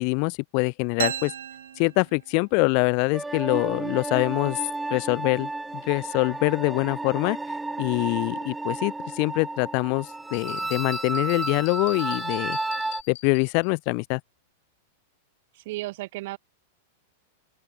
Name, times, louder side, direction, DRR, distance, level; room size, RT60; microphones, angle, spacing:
voice 1, 0.0-1.3 1.8-4.6 4.9-7.4 7.8-12.6 13.1-14.2, left 40 dB or more, 50° left, 0.8 m, -24 dB
sound 1, 1.0-2.7, right 9 dB, 85° right, 0.7 m, -33 dB
sound 2, 3.1-13.0, right 2 dB, 5° right, 0.3 m, -32 dB
sound 3, 10.5-13.7, left 15 dB, 65° left, 4.1 m, -43 dB
voice 2, 15.5-16.4, right 19 dB, 60° right, 2.0 m, -34 dB
open air
hypercardioid pair, 125°, 0 cm